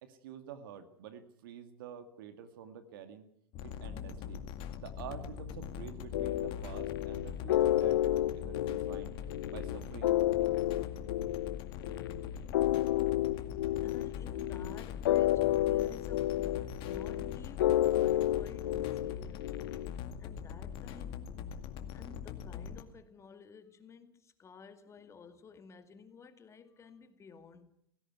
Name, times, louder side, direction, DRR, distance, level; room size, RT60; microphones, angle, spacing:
voice 1, 0.0-3.3 3.6-4.4 4.8-9.2 9.5-10.2, right 8 dB, 65° right, 2.1 m, -48 dB
sound 1, 3.5-22.8, left 8 dB, 45° left, 2.1 m, -42 dB
sound 2, 6.1-19.9, left 14 dB, 70° left, 0.7 m, -31 dB
voice 2, 13.8-19.7 20.2-21.3 21.9-27.7, left 5 dB, 25° left, 2.3 m, -53 dB
18.0 x 16.0 x 9.4 m
hypercardioid pair, 100°, 12 cm